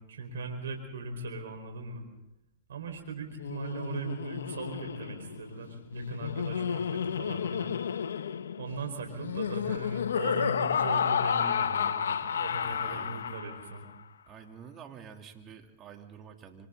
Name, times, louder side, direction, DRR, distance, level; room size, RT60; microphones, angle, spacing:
voice 1, 0.0-2.1 2.7-7.7 8.6-13.9, right 3 dB, 85° right, 4 dB, 4.9 m, -39 dB
Laughter, 3.3-13.8, left 7 dB, 90° left, 0.9 m, -31 dB
voice 2, 12.6-13.3 14.3-16.7, right 7 dB, 35° right, 3 dB, 3.1 m, -49 dB
27.5 x 25.0 x 4.0 m, 0.84 s
hypercardioid pair, 115°, 0 cm